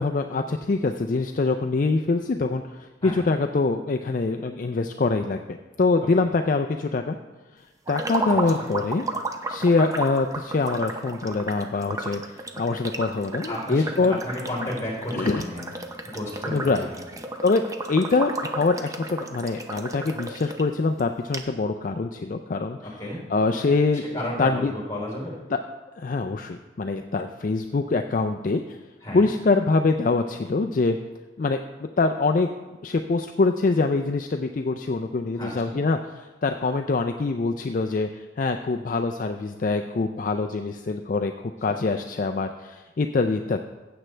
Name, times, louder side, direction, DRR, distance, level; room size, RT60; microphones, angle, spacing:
voice 1, 0.0-7.2 7.9-9.1 9.5-14.2 15.1-15.4 16.5-16.9 17.4-17.6 17.9-23.0 23.3-24.7 25.5-25.6 26.0-28.6 29.1-31.0 31.4-32.5 32.8-38.1 38.4-43.6, left 3 dB, 45° left, 5 dB, 0.4 m, -24 dB
sound 1, 7.9-20.6 21.0-21.1 21.3-21.4, right 2 dB, 20° right, 0.6 m, -33 dB
voice 2, 8.3-8.7 13.5-15.7 16.0-17.0 22.8-23.2 24.1-25.4 29.0-29.3 35.3-35.8, left 1 dB, 15° left, -4 dB, 3.9 m, -33 dB
15.0 x 7.9 x 3.3 m, 1.2 s
head